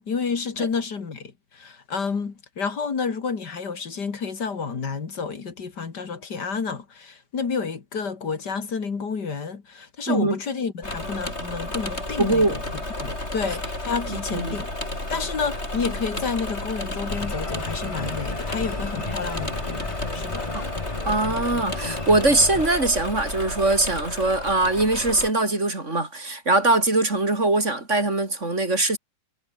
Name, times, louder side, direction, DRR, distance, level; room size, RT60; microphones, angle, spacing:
voice 1, 0.0-12.6 13.0-14.7 15.1-20.5, left 5 dB, 80° left, 3.0 m, -30 dB
Engine / Mechanisms, 10.8-25.3, left 1 dB, 40° left, 7.8 m, -32 dB
voice 2, 12.2-12.6 14.1-14.6 20.5-20.7 21.0-29.0, right 2 dB, 45° right, 4.5 m, -22 dB
sound 1, 17.1-22.7, left 3 dB, 20° left, 1.4 m, -34 dB
omnidirectional pair, 1.8 m